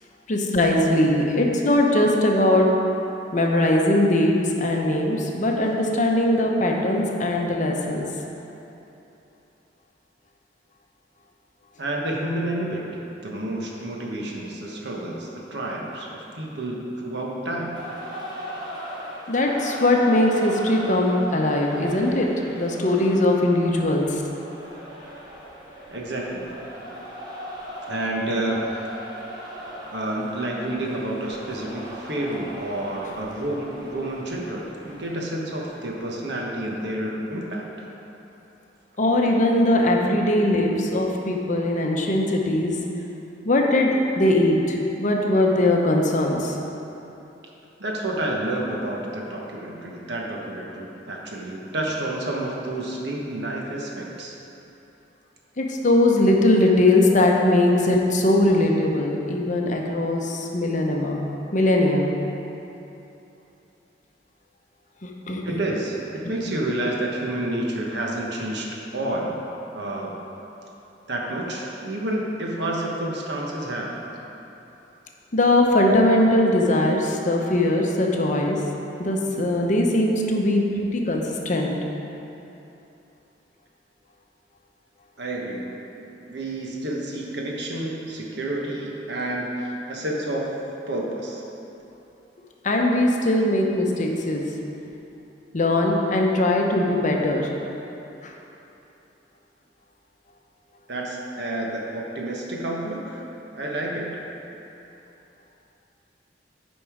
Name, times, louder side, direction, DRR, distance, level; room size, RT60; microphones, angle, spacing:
voice 1, 0.3-2.7 3.3-8.1 19.3-22.3 22.6-24.2 39.0-42.7 43.4-46.6 55.6-61.2 61.5-62.1 65.0-65.6 66.2-66.3 75.3-78.6 79.0-81.8 92.6-94.5 95.5-97.5 98.2-98.3, left 1 dB, 45° left, 0 dB, 0.8 m, -20 dB
voice 2, 11.8-12.9 13.2-17.8 25.9-26.7 27.9-29.0 29.9-37.6 47.8-54.4 65.4-69.3 69.7-70.1 71.1-73.9 85.2-85.7 86.3-90.5 90.9-91.4 100.9-103.2 103.5-104.2, right 1 dB, 70° right, -2 dB, 1.2 m, -29 dB
sound 1, 17.7-36.3, equal, 25° right, 1.9 m, -39 dB
8.9 x 5.4 x 4.9 m, 3.0 s
head